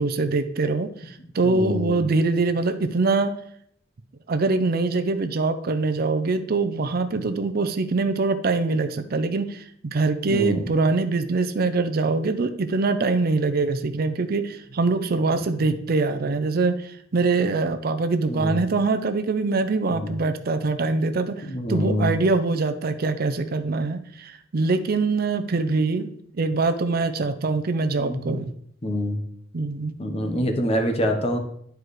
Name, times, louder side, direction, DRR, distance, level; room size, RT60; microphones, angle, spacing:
voice 1, 0.0-3.3 4.3-28.5 29.5-30.0, right 3 dB, 55° right, 9 dB, 0.5 m, -23 dB
voice 2, 1.4-2.0 10.3-10.7 15.3-15.4 18.3-18.6 19.9-20.1 21.4-22.1 28.0-28.4 28.8-29.2 30.0-31.4, equal, 35° left, 4 dB, 0.9 m, -26 dB
10.5 x 4.6 x 3.2 m, 0.69 s
head